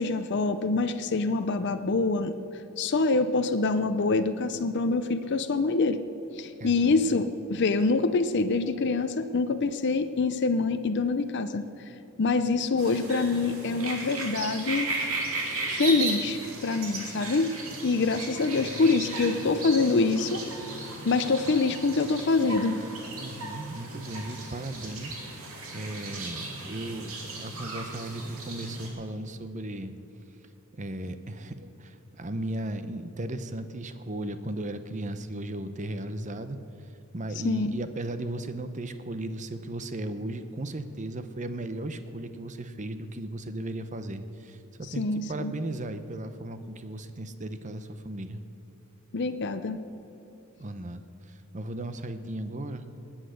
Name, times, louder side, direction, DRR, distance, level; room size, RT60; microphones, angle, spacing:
voice 1, 0.0-2.3 2.8-6.0 6.4-11.6 12.2-14.9 15.7-17.5 17.8-20.4 21.0-22.8 37.4-37.7 45.0-45.5 49.1-49.8, left 3 dB, 50° left, 9 dB, 0.5 m, -25 dB
voice 2, 6.6-7.1 23.2-27.1 27.4-29.9 30.7-36.6 37.1-48.4 50.6-52.8, right 1 dB, 35° right, 10 dB, 0.7 m, -36 dB
sound 1, 12.8-28.9, right 2 dB, 65° right, 2.7 m, -36 dB
19.5 x 8.9 x 6.4 m, 2.8 s
head